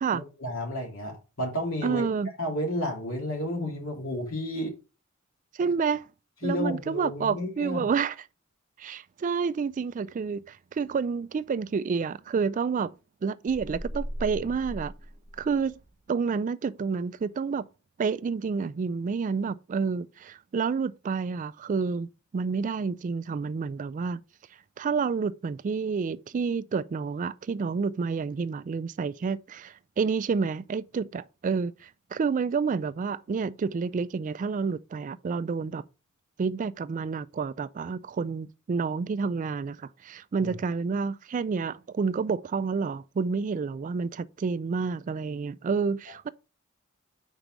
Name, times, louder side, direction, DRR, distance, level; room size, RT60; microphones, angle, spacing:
voice 1, 0.1-2.0 2.4-4.7 6.4-7.8 40.4-40.5, left 1 dB, 70° left, 2.9 m, -31 dB
voice 2, 1.8-2.3 5.6-6.1 6.4-8.3 8.8-12.9 13.2-14.9 15.4-15.7 16.1-17.6 18.0-22.1 22.3-24.2 24.8-35.8 36.4-46.3, right 5 dB, 35° right, 0.3 m, -29 dB
sound 1, 13.5-15.9, equal, 20° left, 3.5 m, -38 dB
5.2 x 4.5 x 6.0 m
head